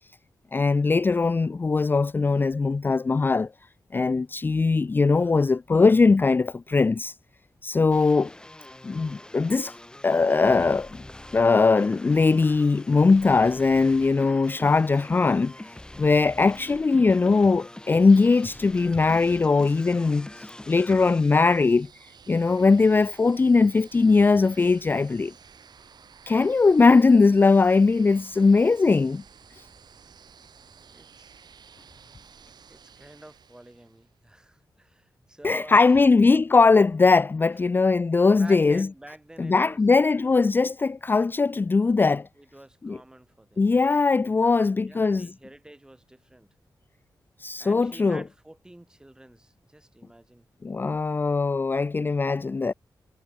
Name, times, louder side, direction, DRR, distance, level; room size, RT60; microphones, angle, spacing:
voice 1, 0.5-3.5 3.9-7.1 7.6-8.3 8.8-9.7 10.0-10.9 11.3-15.7 16.0-21.9 22.3-25.3 26.3-29.2 29.6-29.7 35.4-38.9 39.4-42.3 42.8-43.0 43.6-45.3 47.4-48.2 50.6-52.7, left 4 dB, 25° left, 0.4 m, -20 dB
sound 1, 7.9-21.9, left 1 dB, 10° left, 1.3 m, -44 dB
sound 2, 21.3-34.1, right 7 dB, 70° right, 6.7 m, -53 dB
voice 2, 30.9-31.6 32.7-36.0 38.3-40.3 42.4-43.8 44.2-46.5 47.6-50.5, right 1 dB, 10° right, 2.7 m, -49 dB
wide cardioid pair, 120°, 7 cm